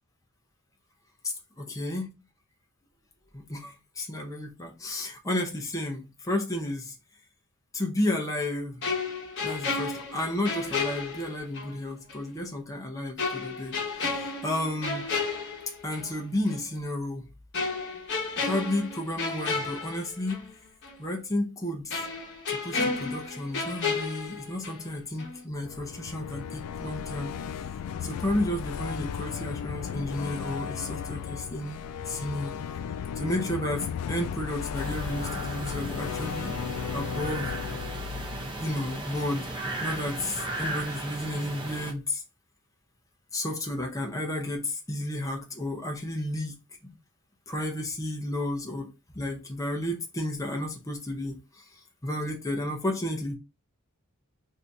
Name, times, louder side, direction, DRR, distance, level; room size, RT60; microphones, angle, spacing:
voice 1, 1.6-2.1 3.3-6.9 7.7-8.8 9.4-13.8 14.4-15.1 15.8-17.3 18.4-20.4 21.0-22.0 22.5-27.4 28.0-32.6 33.2-36.5 36.9-37.5 38.6-39.5 39.8-42.2 43.3-46.9 47.5-48.9 49.1-51.6 52.0-53.3, left 1 dB, 15° left, 0.7 m, -32 dB
sound 1, 8.8-11.8 12.1-12.2 13.2-16.1 16.5-16.7 17.5-20.5 20.8-21.0 21.9-24.9 25.2-25.4, left 4 dB, 55° left, 1.1 m, -32 dB
sound 2, 25.5-39.5, left 7 dB, 80° left, 0.3 m, -35 dB
sound 3, 34.7-41.9, right 2 dB, 20° right, 0.7 m, -36 dB
2.8 x 2.7 x 3.4 m
head